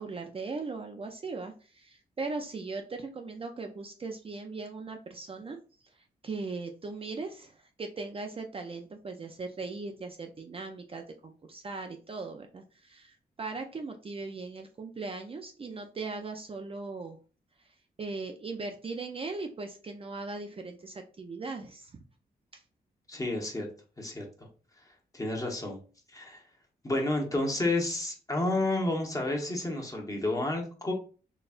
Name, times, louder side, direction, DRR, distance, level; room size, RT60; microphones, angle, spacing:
voice 1, 0.0-5.6 6.2-17.2 18.0-21.9 22.5-22.6, right 3 dB, 35° right, 4 dB, 0.5 m, -39 dB
voice 2, 23.1-23.7 24.0-24.5 25.1-25.8 26.1-26.4 26.8-30.9, left 2 dB, 20° left, 1 dB, 1.2 m, -30 dB
4.2 x 3.2 x 2.5 m, 0.37 s
cardioid pair, 95°, 17 cm